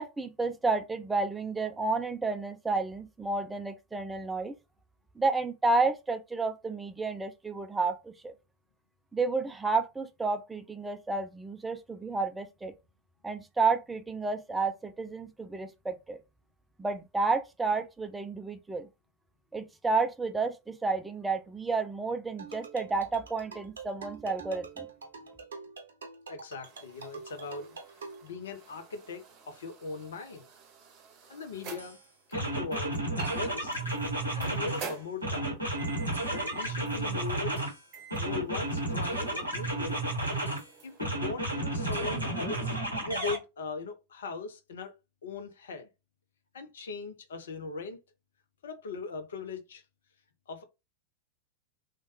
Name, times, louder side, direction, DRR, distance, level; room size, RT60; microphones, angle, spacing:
voice 1, 0.0-4.5 5.2-8.3 9.1-12.7 13.2-16.2 16.8-18.9 19.5-24.9, right 3 dB, 10° right, 0.3 m, -31 dB
sound 1, 22.4-28.3, right 5 dB, 70° right, 0.5 m, -45 dB
voice 2, 26.3-27.7 28.0-30.5 31.3-32.0 32.3-33.8 34.3-35.5 36.3-37.6 38.1-40.0 40.8-42.8 43.0-44.9 45.2-45.9 46.5-48.0 48.6-49.8 50.5-50.6, left 4 dB, 65° left, 0.6 m, -39 dB
sound 2, 26.6-41.1, right 6 dB, 35° right, 0.8 m, -49 dB
sound 3, 31.8-31.9 32.3-34.9 35.2-37.8 38.1-40.6 41.0-43.4, right 1 dB, 90° left, 0.9 m, -32 dB
3.0 x 2.2 x 2.9 m
figure-of-eight pair, 90°, 0 cm